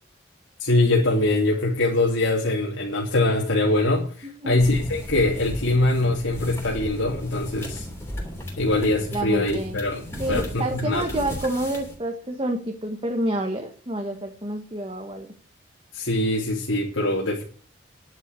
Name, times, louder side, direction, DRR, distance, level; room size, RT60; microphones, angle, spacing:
voice 1, 0.6-7.9 8.6-10.0 10.3-11.2 15.9-17.4, left 2 dB, 85° left, -3 dB, 3.0 m, -23 dB
voice 2, 4.2-4.6 9.1-9.8 10.2-15.3, right 1 dB, 25° right, 3 dB, 1.4 m, -28 dB
sound 1, 4.6-12.0, equal, 15° left, 3.2 m, -35 dB
10.5 x 8.3 x 8.3 m, 0.41 s
head